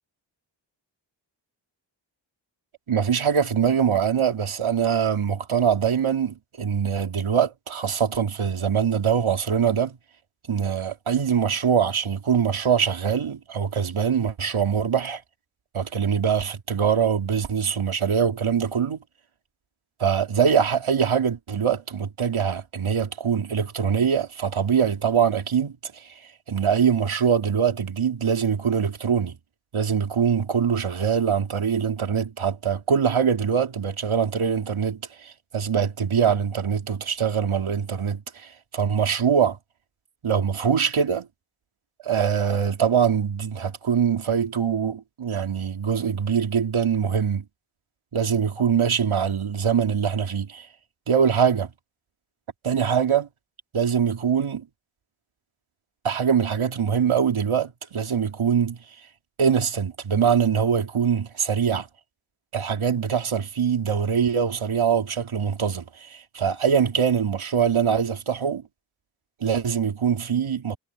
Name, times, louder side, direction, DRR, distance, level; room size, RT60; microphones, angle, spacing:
voice 1, 2.9-10.0 10.5-15.2 15.7-19.0 20.0-26.1 26.5-29.3 29.7-39.6 40.2-41.3 42.0-47.4 48.1-50.7 51.1-51.7 52.6-53.3 53.7-54.6 56.0-58.8 59.4-61.9 62.5-68.6 69.4-70.8, right 7 dB, 85° right, 3.1 m, -23 dB
cardioid pair, 60°, 48 cm